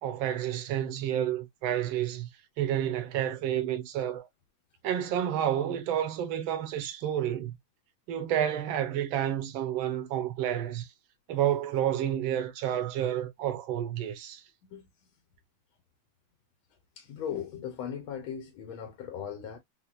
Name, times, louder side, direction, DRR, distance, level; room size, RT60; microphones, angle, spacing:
voice 1, 0.0-2.3 2.6-4.3 4.8-7.6 8.1-10.9 11.3-14.4, right 10 dB, 75° right, 1.4 m, -30 dB
voice 2, 14.6-15.1 17.0-19.6, left 8 dB, 85° left, 1.5 m, -38 dB
4.3 x 2.1 x 2.3 m
omnidirectional pair, 2.3 m